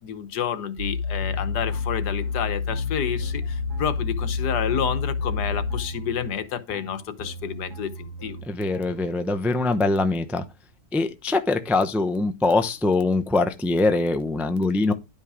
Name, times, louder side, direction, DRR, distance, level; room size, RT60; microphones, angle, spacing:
voice 1, 0.0-8.4, left 8 dB, 75° left, 1.6 m, -30 dB
sound 1, 0.8-5.8, left 5 dB, 75° right, 2.0 m, -28 dB
sound 2, 1.2-9.1, right 1 dB, 15° left, 1.4 m, -40 dB
voice 2, 8.5-10.4 10.9-14.9, left 2 dB, ahead, 0.3 m, -23 dB
11.0 x 5.5 x 4.8 m
omnidirectional pair, 1.8 m